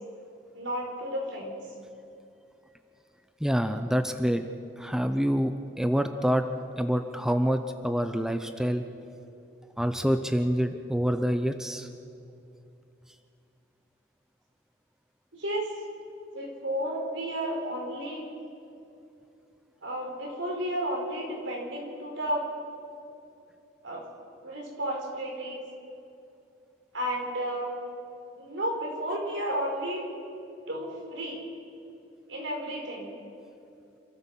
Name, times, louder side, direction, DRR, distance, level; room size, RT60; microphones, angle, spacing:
voice 1, 0.5-1.6 15.3-15.8 16.3-18.3 19.8-22.5 23.8-24.0 24.4-25.6 26.9-27.7 28.4-30.0 30.7-31.4 32.3-33.1, right 1 dB, 85° right, 0 dB, 5.0 m, -32 dB
voice 2, 3.4-4.5 4.8-6.4 6.8-8.8 9.8-11.9, equal, 5° right, 7 dB, 0.7 m, -26 dB
27.5 x 14.0 x 7.4 m, 2.7 s
head